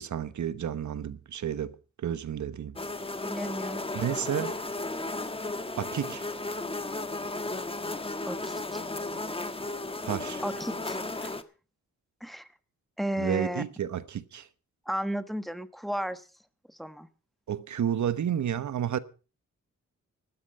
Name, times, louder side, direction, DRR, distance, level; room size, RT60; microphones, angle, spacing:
voice 1, 0.0-1.7 2.0-2.7 3.9-4.5 5.8-6.3 10.0-10.4 13.2-14.5 17.5-19.0, right 9 dB, 70° right, 1.1 m, -31 dB
sound 1, 2.8-11.4, left 2 dB, 20° left, 1.4 m, -34 dB
voice 2, 3.2-3.8 8.3-8.8 10.4-11.3 12.2-12.5 13.0-13.7 14.9-16.2 16.8-17.1, equal, ahead, 1.3 m, -34 dB
14.0 x 13.0 x 5.4 m
cardioid pair, 85°, 30 cm